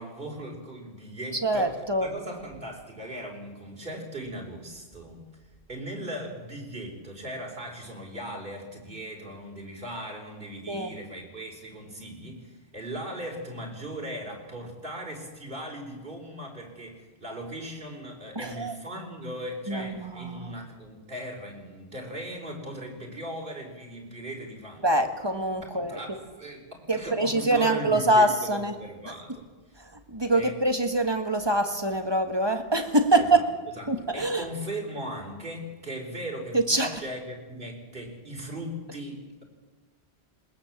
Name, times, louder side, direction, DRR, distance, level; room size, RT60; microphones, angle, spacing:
voice 1, 0.0-1.7 2.0-5.2 5.7-25.1 25.7-29.8 30.3-30.6 33.1-33.4 33.8-39.4, right 1 dB, 55° right, 1 dB, 4.3 m, -38 dB
voice 2, 1.4-2.1 10.7-10.9 18.3-18.7 19.7-20.5 24.8-26.0 26.9-28.7 29.8-33.4 33.9-34.4 36.5-37.0, right 2 dB, 25° right, 6 dB, 1.6 m, -25 dB
20.5 x 20.0 x 7.4 m, 1.3 s
omnidirectional pair, 1.1 m